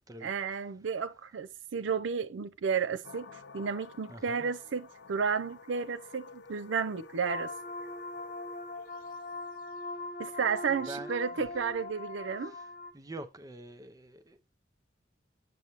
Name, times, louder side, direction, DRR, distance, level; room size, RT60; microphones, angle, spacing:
voice 1, 0.2-3.3 3.5-7.5 10.2-12.5, right 6 dB, 80° right, 0.5 m, -32 dB
sound 1, 3.0-11.9, left 4 dB, 65° left, 0.6 m, -52 dB
voice 2, 4.1-4.5 10.7-11.1 12.5-12.6 12.9-14.6, right 2 dB, 20° right, 0.6 m, -45 dB
sound 2, 7.2-12.9, left 2 dB, 45° left, 1.0 m, -41 dB
8.1 x 6.8 x 3.0 m
head